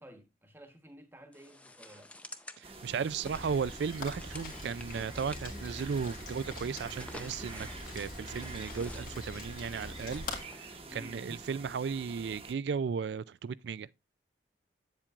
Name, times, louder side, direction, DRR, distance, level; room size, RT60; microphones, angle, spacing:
voice 1, 0.0-2.1 10.8-11.3, equal, 10° right, 1.2 m, -53 dB
sound 1, 1.3-10.9, left 1 dB, 5° left, 0.5 m, -51 dB
sound 2, 2.6-12.5, right 3 dB, 30° right, 1.0 m, -48 dB
voice 2, 2.6-10.2 10.9-13.9, right 6 dB, 70° right, 0.3 m, -35 dB
Rain, 3.2-10.4, left 2 dB, 50° left, 2.0 m, -44 dB
8.4 x 7.4 x 2.4 m
head